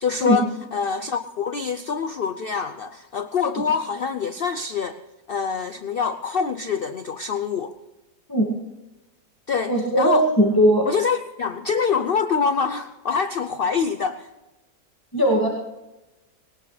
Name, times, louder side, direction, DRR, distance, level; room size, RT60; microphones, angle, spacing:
voice 1, 0.0-5.0 5.3-7.7 9.5-10.2 10.9-14.3, left 6 dB, 75° left, 9 dB, 0.5 m, -25 dB
voice 2, 9.7-10.9 15.1-15.5, right 1 dB, 10° left, -3 dB, 2.0 m, -18 dB
19.5 x 19.0 x 3.3 m, 1.0 s
omnidirectional pair, 1.8 m